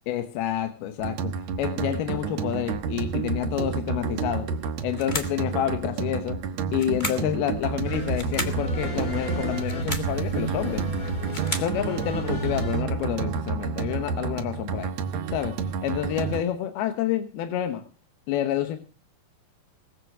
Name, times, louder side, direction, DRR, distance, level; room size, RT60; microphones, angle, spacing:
voice 1, 0.1-1.3 1.6-4.5 4.8-6.4 6.7-10.8 11.6-14.9 15.3-15.5 15.8-17.8 18.3-18.8, left 11 dB, 85° left, 7 dB, 3.1 m, -28 dB
sound 1, 1.0-16.4, right 6 dB, 60° right, 2.0 m, -30 dB
sound 2, 4.9-5.4 6.7-7.3 8.1-8.6 9.6-10.1 11.0-11.8, left 2 dB, 60° left, 0.4 m, -33 dB
sound 3, 7.8-12.8, equal, 30° left, 1.8 m, -33 dB
20.5 x 8.1 x 6.1 m, 0.36 s
omnidirectional pair, 4.4 m